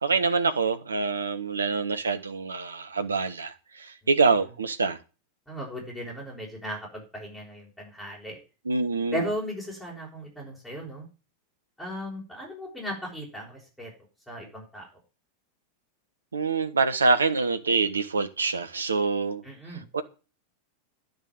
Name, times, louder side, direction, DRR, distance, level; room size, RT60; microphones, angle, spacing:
voice 1, 0.0-5.0 8.6-9.2 16.3-19.4 19.7-20.0, right 4 dB, 75° right, 1.3 m, -25 dB
voice 2, 5.5-8.4 9.1-11.1 11.8-13.9 14.3-14.9 19.4-19.8, equal, ahead, 6.1 m, -36 dB
11.0 x 6.8 x 9.4 m
figure-of-eight pair, 90°, 0 cm